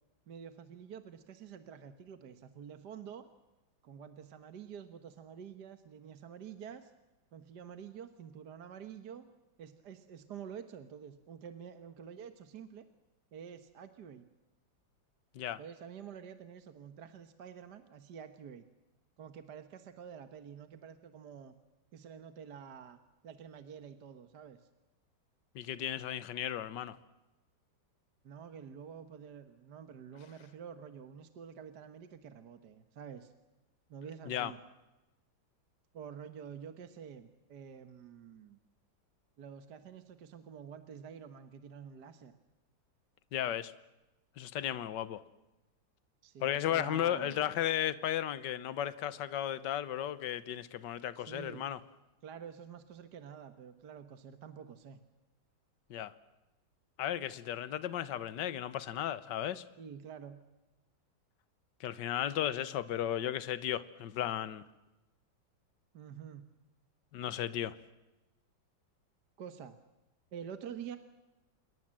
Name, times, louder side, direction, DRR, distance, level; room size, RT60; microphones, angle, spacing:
voice 1, 0.3-3.3 3.8-6.9 7.3-9.3 9.6-12.9 13.3-14.2 15.6-18.6 19.2-21.6 21.9-24.6 28.2-33.3 33.9-34.6 35.9-38.6 39.4-42.4 46.2-47.4 51.2-51.7 52.2-55.0 59.8-60.4 65.9-66.5 69.4-69.8 70.3-71.0, right 7 dB, 60° right, 1.8 m, -48 dB
voice 2, 25.6-27.0 34.3-34.5 43.3-43.7 44.4-45.2 46.4-51.8 55.9-56.1 57.0-59.6 61.8-64.6 67.1-67.8, left 11 dB, 65° left, 1.6 m, -35 dB
28.0 x 22.5 x 7.6 m
omnidirectional pair, 2.1 m